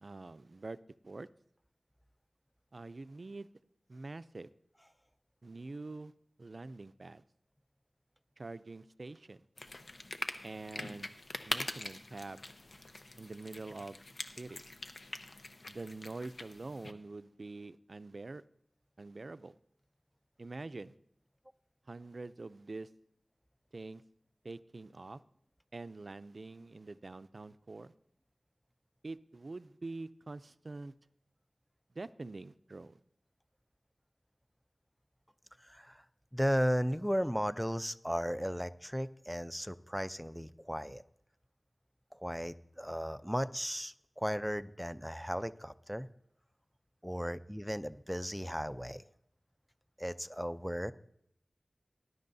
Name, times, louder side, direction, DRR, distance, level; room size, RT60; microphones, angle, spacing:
voice 1, 0.0-0.8 1.0-1.3 2.7-3.5 3.9-4.5 5.4-6.1 6.4-7.2 8.4-9.4 10.4-11.1 11.4-12.4 13.2-14.0 14.4-14.6 15.7-18.4 19.0-19.6 20.4-20.9 21.9-22.9 23.7-24.0 24.4-25.2 25.7-27.9 29.0-30.9 31.9-33.0, right 3 dB, 65° right, 15 dB, 0.4 m, -45 dB
sound 1, 9.6-16.9, left 2 dB, 65° left, 0.9 m, -43 dB
voice 2, 35.6-36.0 36.3-41.0 42.1-46.1 47.0-49.0 50.0-50.9, equal, ahead, 12 dB, 0.5 m, -35 dB
19.0 x 11.0 x 2.7 m, 0.74 s
wide cardioid pair, 55°, 0 cm